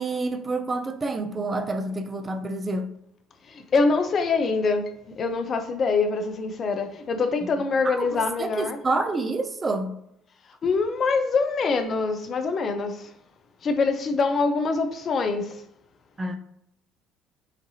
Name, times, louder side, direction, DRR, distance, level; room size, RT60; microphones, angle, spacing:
voice 1, 0.0-2.9 7.8-9.9 16.2-16.4, right 2 dB, 30° right, 0.5 m, -28 dB
voice 2, 3.5-4.8 5.1-8.8 10.6-13.1 13.6-15.6, left 4 dB, 45° left, 0.6 m, -24 dB
5.1 x 2.7 x 2.7 m
hypercardioid pair, 65°, 0 cm